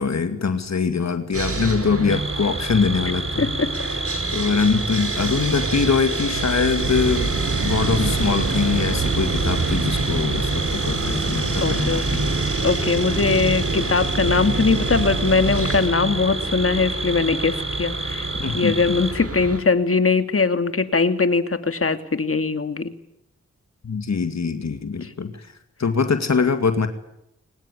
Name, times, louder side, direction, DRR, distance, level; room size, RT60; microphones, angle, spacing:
voice 1, 0.0-3.5 4.3-7.3 7.6-12.3 18.4-19.0 23.8-25.5 25.8-26.9, left 5 dB, 65° left, 8 dB, 2.3 m, -23 dB
Sawing, 1.3-19.6, right 3 dB, 50° right, 4.1 m, -28 dB
sound 1, 2.1-19.1, right 2 dB, 20° right, 1.4 m, -31 dB
voice 2, 3.4-3.7 8.0-8.4 11.6-12.3 12.6-18.3 18.5-22.9 25.0-25.3, left 4 dB, 50° left, 10 dB, 2.3 m, -21 dB
sound 2, 6.8-15.9, right 4 dB, 80° right, 6.0 m, -27 dB
23.0 x 19.5 x 10.0 m, 0.82 s
cardioid pair, 45°, 29 cm